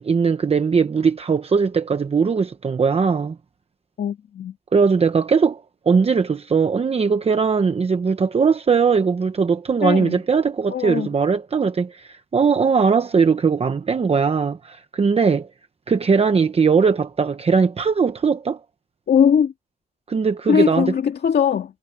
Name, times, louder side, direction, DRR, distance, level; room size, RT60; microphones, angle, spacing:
voice 1, 0.0-3.4 4.7-15.5 15.9-18.6 20.1-20.9, right 5 dB, 35° right, 0.9 m, -19 dB
voice 2, 4.0-4.5 9.8-10.2 10.7-11.1 19.1-19.5 20.5-21.7, left 8 dB, 85° left, 2.1 m, -20 dB
wide cardioid pair, 160°, 17 cm